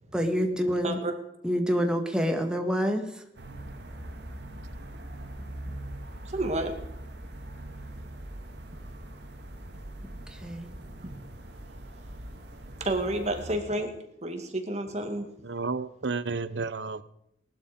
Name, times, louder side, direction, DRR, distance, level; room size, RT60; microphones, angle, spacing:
voice 1, 0.1-1.0 1.4-3.0 10.4-10.7, equal, 5° right, 1.8 m, -27 dB
sound 1, 3.4-13.6, right 1 dB, 70° right, 1.9 m, -42 dB
voice 2, 6.3-6.7 10.9-11.1 12.8-13.9 14.2-15.3, right 1 dB, 40° right, 2.2 m, -30 dB
voice 3, 15.4-17.0, right 4 dB, 90° right, 0.8 m, -31 dB
19.0 x 12.5 x 5.2 m
head